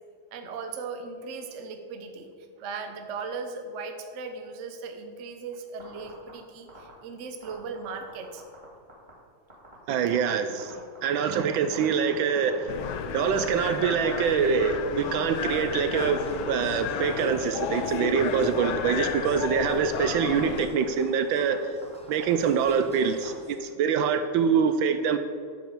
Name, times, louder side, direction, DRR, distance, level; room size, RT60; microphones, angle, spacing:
voice 1, 0.3-2.3 2.6-8.4, right 4 dB, 55° right, 6 dB, 0.8 m, -38 dB
sound 1, 5.8-6.3 6.7-6.9 7.4-8.6 8.9-9.1 9.5-9.7 10.1-10.2 10.6-11.4 11.7-14.7 15.0-15.7 16.0-16.6 16.9-17.8 18.2-18.8 19.1-19.3 19.6-20.1 20.4-20.5 20.7-21.0 21.4-21.6 21.8-23.3, right 2 dB, 20° right, 2.3 m, -46 dB
voice 2, 9.9-12.8 13.1-21.7 22.1-25.2, right 6 dB, 75° right, 9 dB, 1.3 m, -25 dB
sound 2, 12.7-20.7, left 7 dB, 75° left, 1.4 m, -32 dB
sound 3, 15.5-23.6, left 1 dB, 10° left, 0.4 m, -44 dB
9.0 x 5.1 x 7.1 m, 2.1 s
omnidirectional pair, 2.3 m